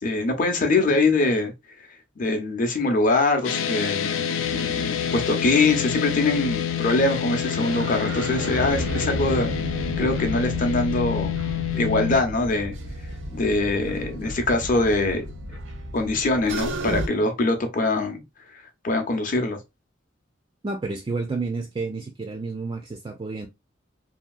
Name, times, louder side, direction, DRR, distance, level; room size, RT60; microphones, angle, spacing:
voice 1, 0.0-1.5 2.2-11.3 11.8-12.7 13.3-15.2 15.9-18.2 18.5-19.6, left 2 dB, 45° left, 0.6 m, -23 dB
sound 1, 3.4-12.2, left 9 dB, 85° left, 0.4 m, -28 dB
sound 2, 4.4-17.1, right 1 dB, 90° right, 0.7 m, -33 dB
voice 2, 20.6-23.5, right 3 dB, 25° right, 0.3 m, -30 dB
2.8 x 2.7 x 2.3 m
head